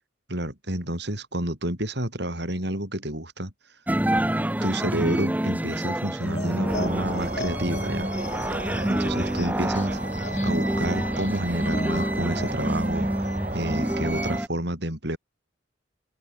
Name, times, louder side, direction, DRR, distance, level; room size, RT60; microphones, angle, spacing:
voice 1, 0.3-3.5 4.6-8.1 8.9-10.0 10.4-15.2, right 1 dB, 55° right, 5.3 m, -30 dB
sound 1, 3.9-14.5, right 1 dB, 10° right, 0.5 m, -27 dB
sound 2, 6.2-14.3, left 2 dB, 35° left, 6.5 m, -40 dB
sound 3, 6.7-14.4, right 2 dB, 35° right, 5.8 m, -34 dB
open air
head